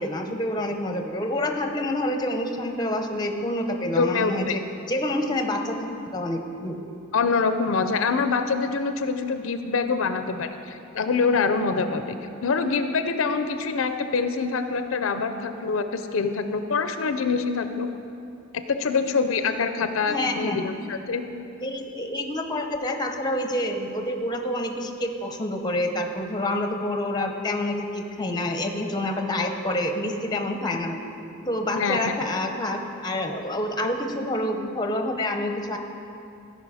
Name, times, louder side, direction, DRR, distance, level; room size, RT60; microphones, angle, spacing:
voice 1, 0.0-4.6 4.9-6.8 20.1-20.6 21.6-31.0 31.5-35.8, left 1 dB, 20° left, 5 dB, 0.6 m, -27 dB
voice 2, 4.0-4.6 7.1-12.2 12.4-17.9 18.5-21.3 31.7-32.1, left 4 dB, 70° left, 9 dB, 0.5 m, -25 dB
16.0 x 5.4 x 4.9 m, 2.7 s
head